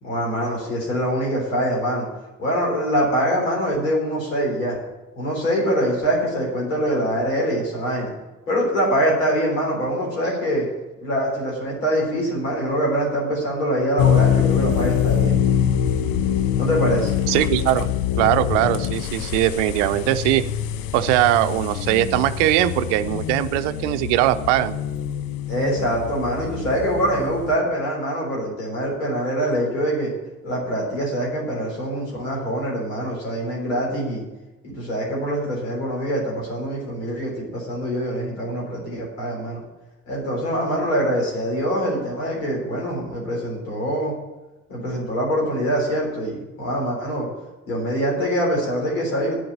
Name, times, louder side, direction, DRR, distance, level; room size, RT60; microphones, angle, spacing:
voice 1, 0.0-2.1 2.4-4.8 5.2-8.1 8.5-10.7 11.0-15.4 16.6-17.1 25.5-30.1 30.4-34.2 34.6-39.6 40.1-44.2 44.7-47.3 47.7-49.4, equal, 75° left, -3 dB, 3.8 m, -24 dB
sound 1, 14.0-27.6, left 9 dB, 55° left, 0.8 m, -24 dB
voice 2, 17.3-17.9 18.2-20.4 20.9-24.8, right 14 dB, 65° right, 13 dB, 0.7 m, -20 dB
9.4 x 7.8 x 8.7 m, 1.1 s
figure-of-eight pair, 45°, 39 cm